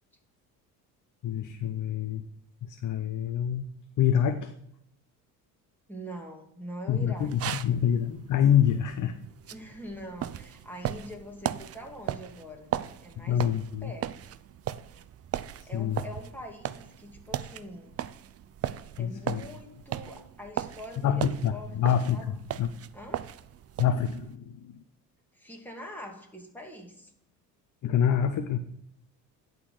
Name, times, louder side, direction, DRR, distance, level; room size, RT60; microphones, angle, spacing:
voice 1, 1.2-2.2 2.6-3.6 4.0-4.5 6.9-9.1 13.2-13.9 15.6-16.0 19.0-19.4 21.0-22.2 22.6-22.7 23.8-24.8 27.8-28.6, left 9 dB, 50° left, 9 dB, 0.8 m, -26 dB
voice 2, 5.9-7.6 9.5-12.7 13.0-13.5 13.8-14.4 15.7-17.9 19.0-21.8 22.1-22.4 22.9-23.3 25.3-27.1, equal, 5° left, 0 dB, 2.4 m, -43 dB
sound 1, 7.2-24.3, right 11 dB, 40° right, 0.5 m, -38 dB
11.0 x 4.0 x 6.6 m, 0.75 s
supercardioid pair, 75°, 40 cm